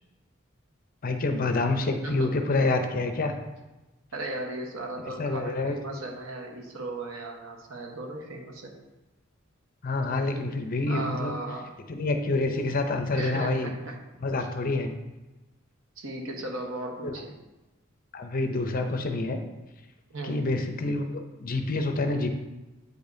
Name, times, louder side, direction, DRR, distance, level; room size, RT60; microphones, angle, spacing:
voice 1, 1.0-3.4 5.0-5.8 9.8-11.4 11.9-13.7 14.2-14.9 17.0-17.1 18.1-19.4 20.2-22.3, left 2 dB, 45° left, 6 dB, 0.6 m, -27 dB
voice 2, 4.1-8.7 10.0-10.5 10.9-11.7 13.1-14.0 16.0-17.3 20.1-20.4, right 2 dB, 90° right, 1 dB, 1.2 m, -36 dB
8.1 x 5.2 x 2.7 m, 1.1 s
head